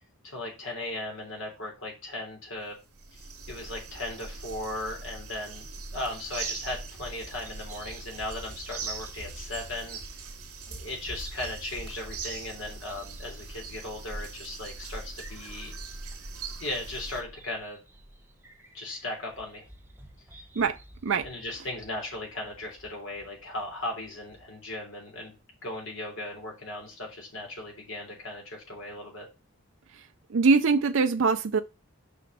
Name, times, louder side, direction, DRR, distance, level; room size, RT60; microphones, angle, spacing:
voice 1, 0.2-2.7 3.1-10.0 10.7-15.7 16.6-17.8 18.7-19.6 21.2-25.3 25.6-29.3, left 2 dB, 60° left, 3.5 m, -37 dB
sound 1, 2.6-2.7 2.9-17.2, right 4 dB, 80° right, 2.5 m, -41 dB
Bird vocalization bird call bird song, 6.5-24.5, right 1 dB, 10° right, 0.9 m, -49 dB
voice 2, 30.3-31.6, right 4 dB, 60° right, 0.4 m, -22 dB
6.7 x 5.4 x 5.4 m
head